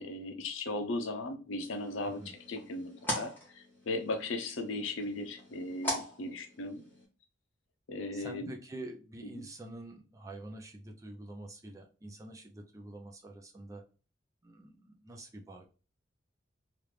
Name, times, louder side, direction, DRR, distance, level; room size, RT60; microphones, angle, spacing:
voice 1, 0.0-6.8 7.9-8.5 9.3-9.4, left 2 dB, 80° left, 6 dB, 0.6 m, -37 dB
sound 1, 1.6-7.0, equal, 10° left, 1.2 m, -41 dB
voice 2, 8.1-13.8 14.4-15.7, right 1 dB, 15° right, 2 dB, 0.4 m, -46 dB
3.1 x 2.5 x 3.2 m, 0.35 s
head